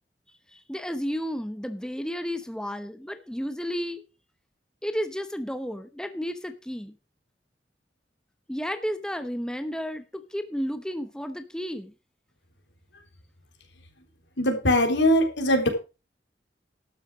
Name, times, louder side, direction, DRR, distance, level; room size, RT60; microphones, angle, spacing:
voice 1, 0.5-4.0 4.8-7.0 8.5-11.9, equal, 5° left, 9 dB, 0.9 m, -32 dB
voice 2, 14.4-15.7, left 1 dB, 85° left, 4 dB, 3.5 m, -21 dB
12.5 x 6.8 x 6.0 m, 0.31 s
head